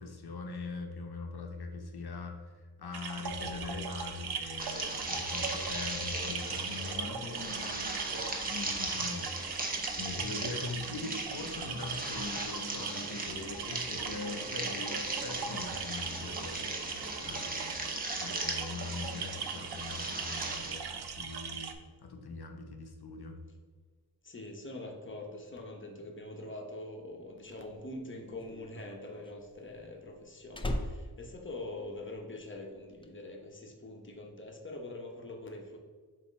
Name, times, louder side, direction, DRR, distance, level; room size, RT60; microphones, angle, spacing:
voice 1, 0.0-2.4 2.8-16.8 17.2-17.8 18.1-23.4, left 3 dB, 70° left, 3 dB, 0.9 m, -42 dB
sound 1, 2.9-21.7, right 6 dB, 70° right, 0.6 m, -40 dB
sound 2, 4.6-20.7, right 1 dB, 20° right, 0.9 m, -38 dB
voice 2, 24.2-35.8, left 2 dB, 30° left, 1 dB, 0.9 m, -44 dB
Slam, 28.2-32.4 32.6-33.1, left 1 dB, 15° left, 0.4 m, -39 dB
7.1 x 2.8 x 5.3 m, 1.5 s
wide cardioid pair, 145°, 40 cm